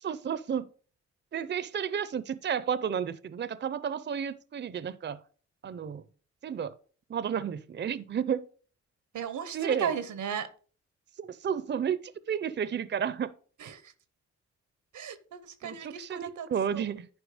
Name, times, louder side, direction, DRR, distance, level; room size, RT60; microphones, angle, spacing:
voice 1, 0.0-0.7 1.3-5.2 5.6-6.0 6.4-6.7 7.1-8.5 9.5-9.9 11.2-13.3 15.6-17.1, right 8 dB, 40° right, 0.5 m, -32 dB
voice 2, 9.1-10.5 13.6-13.9 14.9-16.8, right 8 dB, 90° right, 1.0 m, -36 dB
10.5 x 4.7 x 5.0 m
cardioid pair, 85°, 29 cm